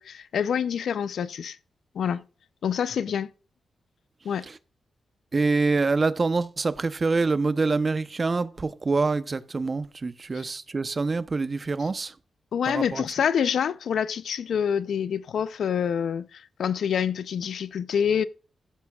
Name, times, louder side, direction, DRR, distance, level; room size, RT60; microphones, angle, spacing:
voice 1, 0.0-1.6 1.9-2.2 2.6-3.3 4.2-4.5 12.5-18.2, left 8 dB, 75° left, 0.5 m, -26 dB
voice 2, 5.3-12.1 12.7-13.0, right 3 dB, 40° right, 0.7 m, -25 dB
14.0 x 9.4 x 2.4 m
cardioid pair, 60°, 0 cm